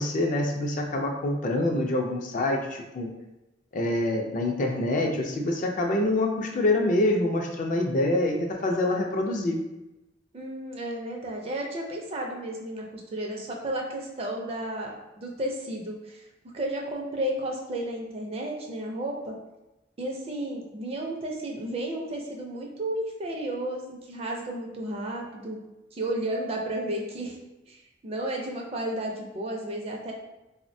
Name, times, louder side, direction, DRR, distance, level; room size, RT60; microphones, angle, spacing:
voice 1, 0.0-3.1 3.7-9.6, left 1 dB, 45° left, 2 dB, 0.4 m, -26 dB
voice 2, 10.3-16.3 16.5-19.3 20.0-25.6 25.9-27.4 27.7-27.8 28.0-30.1, right 1 dB, 30° right, 0 dB, 0.4 m, -33 dB
3.3 x 2.1 x 2.6 m, 0.98 s
head